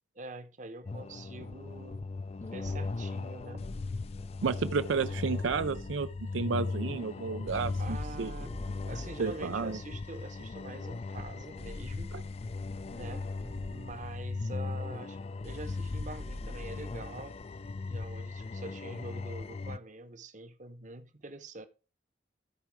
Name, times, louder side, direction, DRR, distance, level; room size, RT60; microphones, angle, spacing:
voice 1, 0.2-2.1 2.4-3.6 7.8-8.5 8.8-12.1 12.9-13.3 13.7-17.4 17.9-21.7, right 2 dB, 40° right, 0.9 m, -45 dB
sound 1, 0.8-19.8, left 3 dB, 35° left, 0.3 m, -38 dB
Thump thud, 2.6-3.1 5.4-6.2 8.4-8.9 11.1-11.6 13.4-14.1 15.9-16.8, equal, 10° right, 0.7 m, -47 dB
voice 2, 4.4-6.1 6.3-8.3 9.2-9.8 12.1-12.2, right 5 dB, 85° right, 0.5 m, -31 dB
13.5 x 4.7 x 4.7 m
head